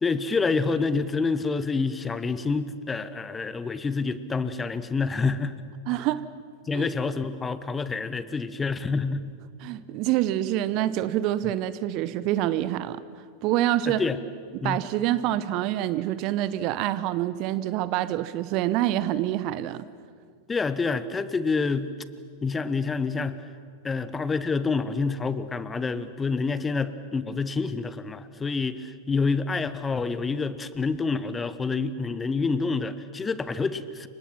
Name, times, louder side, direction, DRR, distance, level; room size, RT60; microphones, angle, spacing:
voice 1, 0.0-5.5 6.7-9.4 13.9-14.2 14.6-14.8 20.5-21.9 22.4-23.4 23.8-34.1, left 4 dB, 15° left, 15 dB, 1.0 m, -27 dB
voice 2, 5.9-6.2 6.7-6.9 9.6-13.0 13.4-14.0 14.6-19.8, right 13 dB, 40° right, 16 dB, 0.9 m, -26 dB
30.0 x 25.5 x 6.0 m, 2.1 s
figure-of-eight pair, 90°, 0 cm